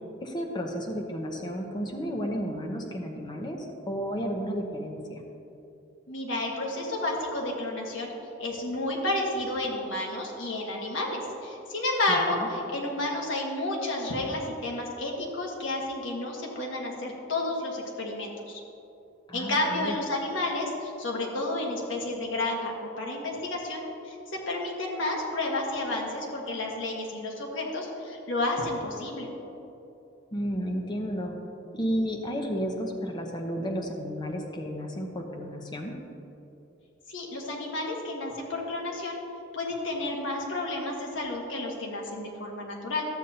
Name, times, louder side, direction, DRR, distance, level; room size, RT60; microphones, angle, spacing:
voice 1, 0.2-5.2 12.1-12.5 19.3-19.9 30.3-31.4 31.7-36.0, equal, 25° left, 2 dB, 0.8 m, -32 dB
voice 2, 6.1-8.1 8.4-18.6 19.3-29.3 37.1-39.2 39.5-43.1, left 2 dB, 90° left, -1 dB, 1.5 m, -31 dB
12.5 x 8.1 x 2.8 m, 2.8 s
head